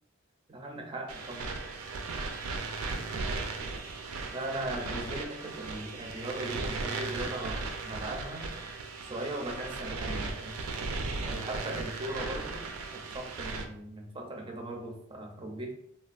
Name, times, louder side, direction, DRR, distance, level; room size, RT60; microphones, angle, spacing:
voice 1, 0.5-1.5 4.3-8.5 9.0-10.7 11.2-12.6 12.9-15.7, right 1 dB, 25° right, 2 dB, 0.4 m, -38 dB
sound 1, 1.1-13.7, right 3 dB, 85° right, 0.4 m, -36 dB
3.3 x 2.2 x 2.4 m, 0.71 s
head